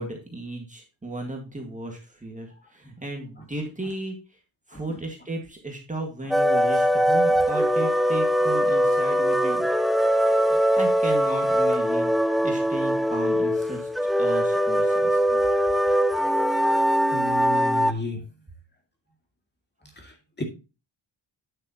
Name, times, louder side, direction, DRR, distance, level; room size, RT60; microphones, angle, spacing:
voice 1, 0.0-4.4 4.7-9.7 10.8-13.9 14.2-15.2, right 2 dB, 15° right, 1 dB, 1.8 m, -35 dB
sound 1, 6.3-17.9, equal, ahead, 0.4 m, -22 dB
voice 2, 17.1-18.3 20.0-20.4, left 1 dB, 25° left, 2 dB, 2.2 m, -33 dB
9.5 x 7.7 x 2.9 m, 0.30 s
wide cardioid pair, 170°, 45 cm